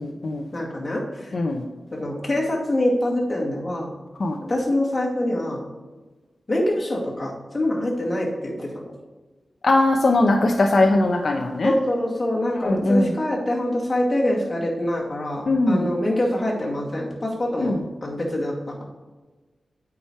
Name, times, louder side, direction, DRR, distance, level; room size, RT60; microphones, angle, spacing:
voice 1, 0.0-0.4 1.3-1.6 4.2-4.4 9.6-11.7 12.6-13.1 15.5-15.9 17.6-17.8, left 2 dB, 60° left, 2 dB, 0.7 m, -20 dB
voice 2, 0.5-1.3 1.9-3.9 4.4-5.6 6.5-8.9 11.6-18.8, left 1 dB, 30° left, -3 dB, 2.3 m, -25 dB
8.7 x 5.0 x 4.4 m, 1.3 s
wide cardioid pair, 85°, 0 cm